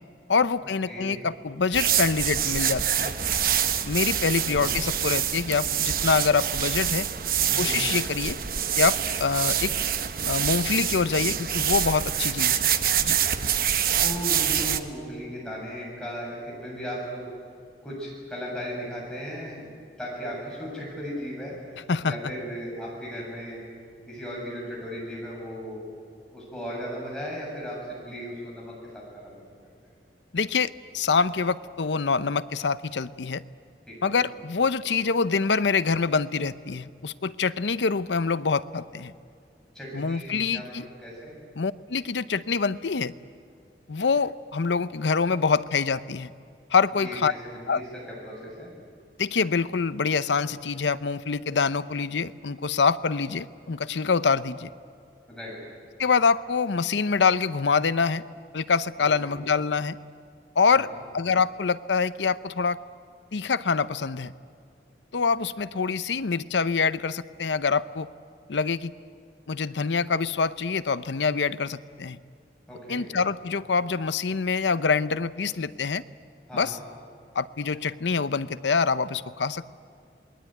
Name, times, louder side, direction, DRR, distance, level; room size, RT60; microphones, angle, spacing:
voice 1, 0.3-3.1 3.8-7.1 7.6-8.4 8.8-9.7 10.3-12.7 13.0-13.2 21.9-22.1 30.3-33.4 34.0-39.1 39.9-40.9 41.6-43.1 43.9-46.3 46.7-47.3 47.7-47.8 49.2-54.7 56.0-58.2 58.5-60.0 60.6-62.8 63.3-64.3 65.1-68.1 68.5-68.9 69.5-72.2 72.9-76.0 76.5-76.8 77.3-79.7, left 5 dB, 85° left, 15 dB, 0.7 m, -25 dB
voice 2, 0.9-1.2 4.5-4.8 7.5-7.9 14.0-17.3 17.8-19.7 20.0-21.5 22.0-23.6 24.1-25.8 26.3-29.3 33.9-34.1 39.7-40.7 41.0-41.3 47.0-48.7 55.3-55.6 59.0-59.3 60.7-61.0 72.7-73.0 76.5-76.8, equal, 5° left, -4 dB, 7.7 m, -36 dB
sound 1, 1.7-14.8, right 9 dB, 50° right, 1.0 m, -26 dB
27.5 x 20.5 x 9.2 m, 2.2 s
head